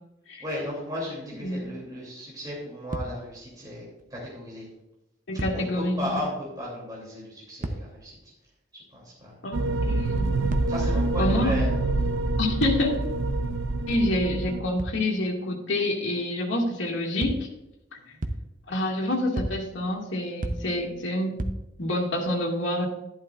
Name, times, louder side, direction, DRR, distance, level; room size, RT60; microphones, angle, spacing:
voice 1, 0.4-4.7 5.5-8.2 8.9-9.3 10.7-11.7 18.1-18.2, equal, 20° right, -5 dB, 2.9 m, -35 dB
sound 1, 2.9-3.5 4.0-4.1 5.3-6.0 7.6-8.2 10.5-11.1 12.6-13.2 14.8-15.3 17.2-17.7 18.2-18.8 19.4-20.0 20.4-21.0 21.4-22.0, right 1 dB, 40° right, 0.7 m, -35 dB
voice 2, 5.3-6.0 9.4-10.5 11.2-11.5 12.4-12.9 13.9-17.5 18.7-21.4 21.8-22.9, left 1 dB, 75° left, -1 dB, 2.1 m, -27 dB
sound 2, 9.5-14.6, right 2 dB, 80° right, 0.6 m, -26 dB
11.5 x 11.0 x 2.5 m, 0.90 s
head